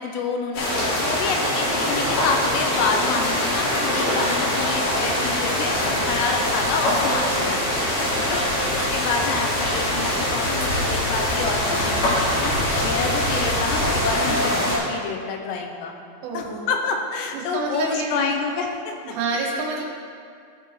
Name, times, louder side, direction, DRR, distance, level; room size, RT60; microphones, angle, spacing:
voice 1, 0.0-5.8 6.0-7.8 8.2-15.9 16.3-19.1, left 5 dB, 80° left, 3 dB, 3.3 m, -28 dB
sound 1, 0.5-14.8, left 1 dB, 50° left, 3.1 m, -23 dB
voice 2, 16.2-16.7 17.3-18.4 19.0-19.8, right 3 dB, 75° right, -1 dB, 3.2 m, -29 dB
15.0 x 5.8 x 3.2 m, 2.3 s
omnidirectional pair, 6.0 m